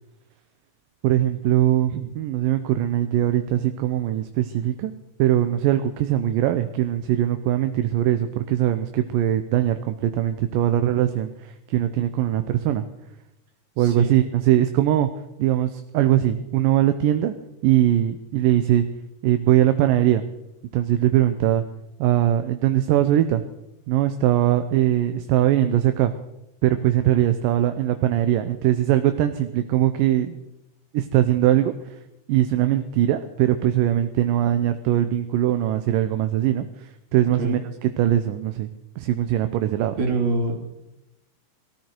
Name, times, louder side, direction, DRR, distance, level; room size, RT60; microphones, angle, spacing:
voice 1, 1.0-4.9 5.2-12.9 13.8-15.1 15.4-17.3 17.6-18.9 19.2-20.2 20.7-21.6 22.0-23.4 23.9-26.1 26.6-30.4 30.9-32.0 32.3-38.7 39.0-40.0, right 12 dB, 80° right, 9 dB, 2.4 m, -21 dB
voice 2, 13.8-14.1 37.2-37.6 40.0-40.6, right 3 dB, 60° right, 1 dB, 4.2 m, -25 dB
22.0 x 14.0 x 4.5 m, 0.90 s
omnidirectional pair, 4.0 m